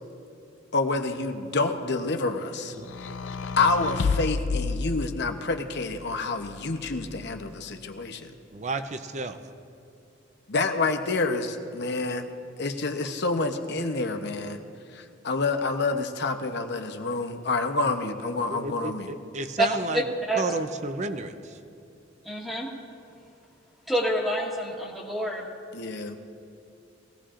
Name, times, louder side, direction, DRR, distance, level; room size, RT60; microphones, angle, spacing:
voice 1, 0.7-2.7 3.0-3.1 3.6-8.3 10.5-12.3 12.6-14.6 14.9-19.1 25.7-26.2, left 3 dB, 60° left, 6 dB, 0.9 m, -28 dB
sound 1, 2.8-5.5 6.4-7.4, left 4 dB, 80° left, 0.5 m, -31 dB
voice 2, 8.5-9.4 18.5-21.6, right 2 dB, 35° right, 9 dB, 0.6 m, -32 dB
voice 3, 22.2-22.7 23.9-25.4, right 1 dB, ahead, -4 dB, 1.3 m, -27 dB
20.5 x 17.0 x 2.5 m, 2.6 s
head